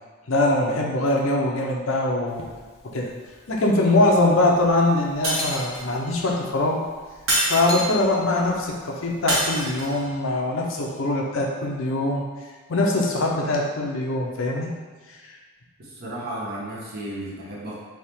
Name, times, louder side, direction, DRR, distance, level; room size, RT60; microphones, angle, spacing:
voice 1, 0.3-2.4 2.8-3.1 3.5-6.8 7.5-12.2 12.7-14.7 15.1-15.4, left 2 dB, 65° left, -1 dB, 0.6 m, -22 dB
sound 1, 2.3-9.9, left 2 dB, 30° left, 0.4 m, -41 dB
Shatter, 5.2-6.0 7.3-8.1 9.3-10.1, right 1 dB, 60° right, 1.3 m, -25 dB
voice 2, 15.8-17.7, right 1 dB, 45° right, -5 dB, 1.0 m, -33 dB
3.5 x 2.8 x 4.3 m, 1.4 s
head